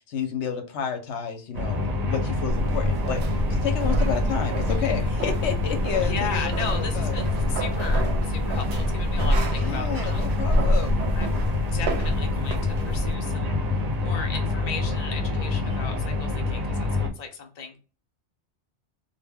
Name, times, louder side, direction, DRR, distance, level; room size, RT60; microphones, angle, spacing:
voice 1, 0.1-3.2 3.5-7.2 9.5-11.0 11.3-11.4 15.5-15.9, left 7 dB, 80° left, 5 dB, 0.9 m, -31 dB
sound 1, 1.5-17.1, left 3 dB, 45° right, 0.7 m, -27 dB
sound 2, 2.5-13.1, equal, 70° right, 0.8 m, -27 dB
voice 2, 6.0-10.3 11.2-11.4 11.7-13.5 14.0-17.8, left 5 dB, 45° left, 3 dB, 0.7 m, -36 dB
2.2 x 2.1 x 3.3 m, 0.37 s
omnidirectional pair, 1.1 m